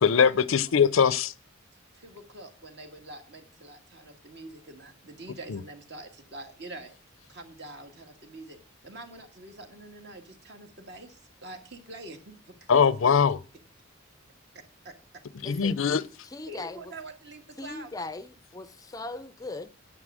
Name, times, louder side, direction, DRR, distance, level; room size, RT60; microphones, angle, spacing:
voice 1, 0.0-1.3 5.5-5.6 12.7-13.4 15.4-16.0, left 6 dB, 80° left, 0.5 m, -21 dB
voice 2, 1.9-6.9 7.3-12.9 14.8-15.2 15.5-15.6 15.9-16.0 16.5-18.0, right 2 dB, 55° right, 1.8 m, -45 dB
voice 3, 15.4-15.8 16.2-16.8 17.6-19.7, left 2 dB, 20° left, 0.4 m, -39 dB
9.7 x 9.4 x 6.2 m
head